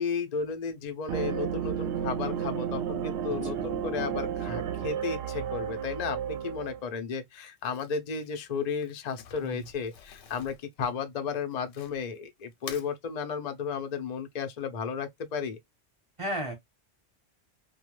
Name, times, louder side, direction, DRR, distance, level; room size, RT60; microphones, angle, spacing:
voice 1, 0.0-15.6, left 6 dB, 50° left, 0.5 m, -34 dB
sound 1, 1.1-6.8, right 8 dB, 70° right, 0.8 m, -32 dB
voice 2, 3.3-3.7 9.4-9.6 16.2-16.5, equal, 30° right, 0.8 m, -35 dB
Crumpling crinkling, 7.6-12.2 12.5-12.9, left 7 dB, 85° left, 1.0 m, -48 dB
2.3 x 2.2 x 2.9 m
omnidirectional pair, 1.2 m